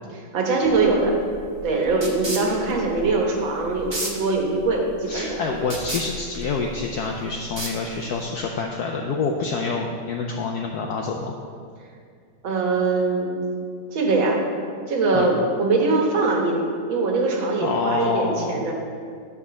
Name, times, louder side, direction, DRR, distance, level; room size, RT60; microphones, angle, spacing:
voice 1, 0.3-1.2 1.6-5.4 12.4-13.4 13.9-14.4 14.9-18.7, right 3 dB, 70° right, 0 dB, 1.9 m, -22 dB
sound 1, 0.7-8.3, right 1 dB, 35° right, 0.4 m, -35 dB
voice 2, 5.1-11.4 15.1-15.3 17.6-18.7, left 4 dB, 75° left, 1 dB, 0.9 m, -27 dB
10.5 x 3.6 x 6.8 m, 2.2 s
omnidirectional pair, 2.3 m